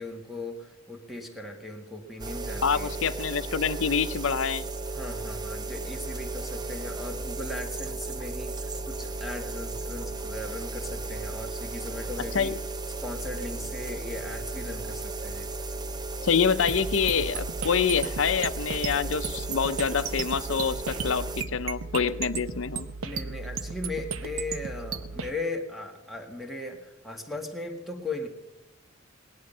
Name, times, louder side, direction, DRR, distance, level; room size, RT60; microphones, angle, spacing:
voice 1, 0.0-2.9 4.9-12.5 13.0-15.5 22.2-22.3 23.0-28.3, left 2 dB, ahead, 3 dB, 2.0 m, -38 dB
sound 1, 2.2-21.4, right 3 dB, 20° right, 0.7 m, -35 dB
voice 2, 2.6-4.7 12.3-12.6 16.2-22.9, left 6 dB, 70° left, 12 dB, 0.7 m, -26 dB
sound 2, 5.8-6.3 6.7-7.3 7.8-8.3 8.8-9.4 9.8-10.4 10.8-11.4 11.8-12.4 12.8-13.4 13.8-14.4 14.8-15.4 15.8-16.4 16.8-16.9, left 2 dB, 70° right, 6.1 m, -53 dB
sound 3, 16.7-25.3, right 5 dB, 90° right, 0.8 m, -35 dB
18.5 x 11.5 x 5.5 m, 0.95 s
head